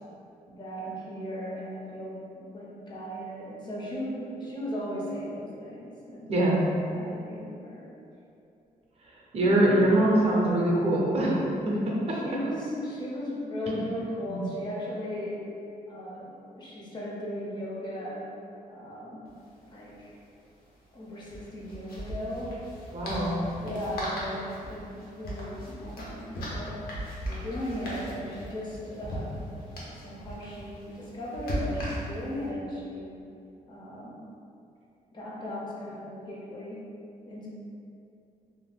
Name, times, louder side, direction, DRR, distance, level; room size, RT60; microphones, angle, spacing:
voice 1, 0.5-6.4 6.8-7.9 12.1-15.5 15.9-18.2 18.7-19.2 19.7-20.2 20.9-22.6 23.1-26.8 27.2-33.1 33.7-34.2 35.1-36.8 37.2-37.5, equal, 30° left, -5 dB, 0.4 m, -37 dB
voice 2, 6.3-6.6 9.3-11.3 11.6-12.2 14.3-14.4 22.9-23.3, right 1 dB, 45° right, -4 dB, 0.5 m, -23 dB
sound 1, 19.3-19.4 19.6-19.7 21.2-32.4, equal, 85° left, 0.7 m, -38 dB
2.5 x 2.1 x 3.3 m, 2.6 s
wide cardioid pair, 170°, 15 cm